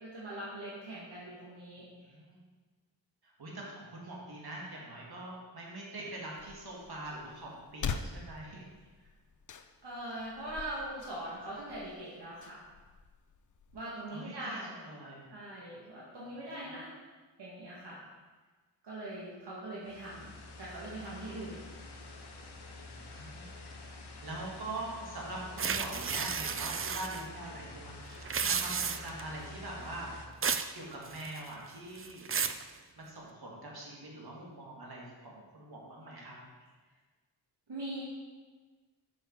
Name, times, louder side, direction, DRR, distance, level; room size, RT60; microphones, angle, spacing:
voice 1, 0.0-1.8 9.8-12.6 13.7-14.7 15.3-16.9 17.4-18.0 18.8-21.6 37.7-38.0, right 1 dB, 80° right, -7 dB, 1.7 m, -41 dB
voice 2, 1.8-2.4 3.2-8.6 14.1-15.2 16.3-16.4 16.7-16.8 22.7-30.1 30.7-32.3 33.0-36.4, right 2 dB, 65° right, -3 dB, 2.1 m, -44 dB
sound 1, 6.4-13.8, left 5 dB, 50° left, 0.5 m, -44 dB
sound 2, 19.8-30.3, left 3 dB, 75° left, 1.0 m, -48 dB
sound 3, 25.6-27.2 28.2-29.2 30.4-30.7 31.1-31.5 32.0-32.6, right 6 dB, 35° right, 0.4 m, -33 dB
6.8 x 6.5 x 4.5 m, 1.4 s
cardioid pair, 50°, 41 cm